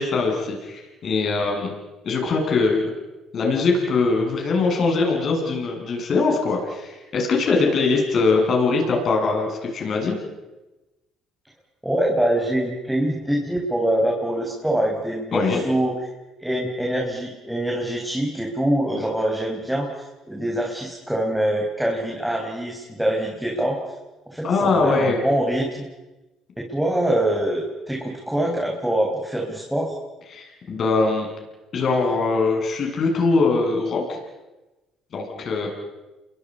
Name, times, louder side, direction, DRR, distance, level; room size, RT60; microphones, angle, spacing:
voice 1, 0.0-1.7 2.0-2.9 3.3-10.2 15.3-15.6 24.4-25.2 30.3-31.3 31.7-34.2 35.1-35.7, left 3 dB, 50° left, 1 dB, 7.9 m, -22 dB
voice 2, 11.8-15.9 16.4-23.8 24.3-25.9 26.6-30.0, right 1 dB, 5° right, -2 dB, 5.3 m, -24 dB
29.5 x 23.5 x 5.6 m, 1.1 s
supercardioid pair, 70°, 0 cm